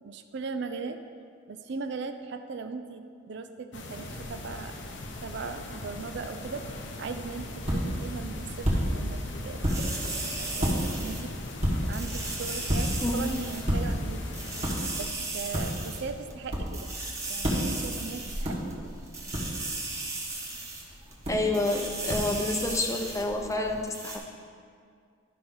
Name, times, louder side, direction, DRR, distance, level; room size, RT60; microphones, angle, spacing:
voice 1, 0.0-1.0 1.5-4.7 5.2-6.6 7.0-9.6 10.4-11.3 11.7-14.3 14.9-17.0 17.3-18.9, right 4 dB, 60° right, 8 dB, 0.4 m, -38 dB
sound 1, 3.7-14.9, left 2 dB, 65° left, 0.9 m, -40 dB
sound 2, 7.0-23.8, equal, 35° right, 1.6 m, -33 dB
sound 3, 9.7-11.5 11.9-13.6 13.9-14.0 14.3-16.0 16.3-16.4 16.7-18.7 19.1-20.8 21.1-21.2 21.5-23.2 23.5-23.6 23.9-24.2, right 3 dB, 15° right, 1.1 m, -36 dB
voice 2, 13.0-13.3 21.3-24.2, left 2 dB, 15° left, 2 dB, 0.6 m, -28 dB
12.0 x 5.6 x 3.9 m, 2.2 s
head